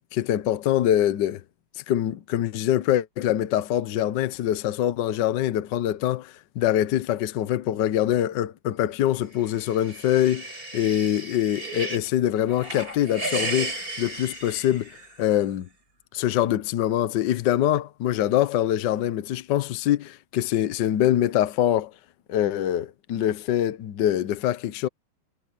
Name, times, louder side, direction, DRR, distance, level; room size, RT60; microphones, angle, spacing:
voice 1, 0.0-1.4 1.8-15.7 16.1-21.9 22.3-24.9, left 11 dB, 65° left, 1.4 m, -24 dB
sound 1, 9.4-12.1 12.5-15.3, right 2 dB, 45° right, 7.3 m, -34 dB
omnidirectional pair, 2.3 m